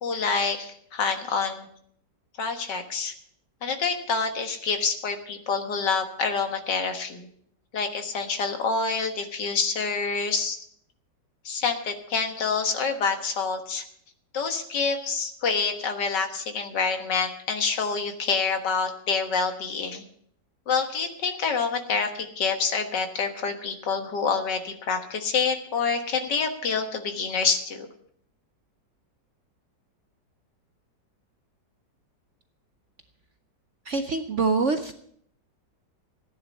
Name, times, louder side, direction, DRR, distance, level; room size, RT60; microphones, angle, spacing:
voice 1, 0.0-1.7 2.4-3.1 3.6-7.3 7.7-10.6 11.5-13.8 14.3-20.0 20.7-27.9, left 5 dB, 70° left, 5 dB, 2.1 m, -27 dB
voice 2, 33.9-34.9, right 4 dB, 55° right, 7 dB, 0.9 m, -25 dB
15.5 x 10.0 x 5.4 m, 0.66 s
omnidirectional pair, 2.0 m